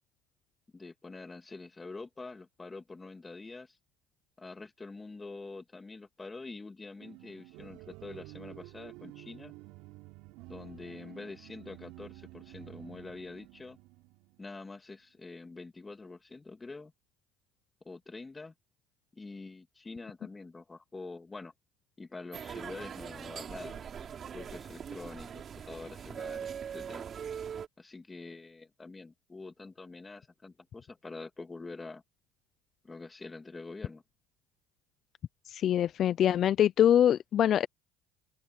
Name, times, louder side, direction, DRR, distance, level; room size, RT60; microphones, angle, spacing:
voice 1, 0.7-3.8 4.4-9.5 10.5-13.8 14.4-16.9 17.8-18.5 19.1-21.5 22.0-23.9 24.3-27.0 27.8-32.0 32.8-34.0, left 3 dB, 20° left, 2.7 m, -46 dB
sound 1, 7.0-14.6, right 20 dB, 70° right, 3.4 m, -51 dB
sound 2, 22.3-27.7, right 7 dB, 40° right, 3.9 m, -41 dB
voice 2, 35.5-37.7, left 10 dB, 50° left, 0.6 m, -24 dB
open air
hypercardioid pair, 80°, 0 cm